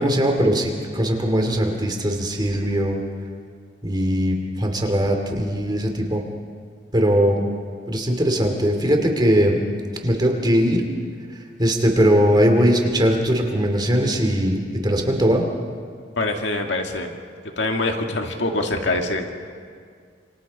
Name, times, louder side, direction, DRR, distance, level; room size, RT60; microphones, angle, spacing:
voice 1, 0.0-3.0 3.8-6.2 6.9-7.4 7.9-9.6 10.0-10.8 11.6-15.5, equal, 25° right, 3 dB, 2.6 m, -20 dB
voice 2, 16.2-17.1 17.6-19.4, left 2 dB, 75° left, 3 dB, 2.0 m, -24 dB
28.0 x 25.0 x 4.2 m, 2.1 s
head